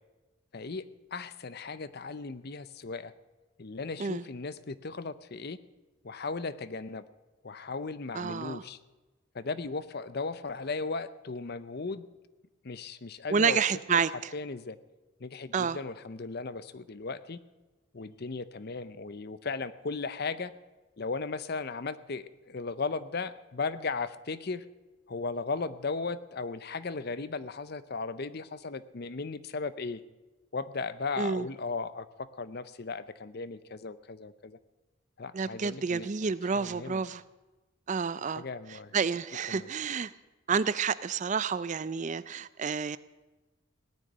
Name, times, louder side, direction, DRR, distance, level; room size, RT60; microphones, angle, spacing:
voice 1, 0.5-3.1 3.6-5.6 6.0-7.0 7.4-8.8 9.3-12.1 12.6-13.6 13.9-14.0 14.3-14.8 15.2-17.4 17.9-20.5 21.0-24.6 25.1-30.0 30.5-34.6 35.2-37.0 38.4-39.0 39.5-39.7, left 4 dB, 50° left, 15 dB, 0.6 m, -36 dB
voice 2, 8.1-8.6 13.3-14.3 15.5-15.8 31.2-31.5 35.3-37.2 37.9-38.4 38.7-40.1 40.5-43.0, right 5 dB, 35° right, 17 dB, 0.4 m, -29 dB
18.0 x 6.5 x 9.8 m, 1.1 s
head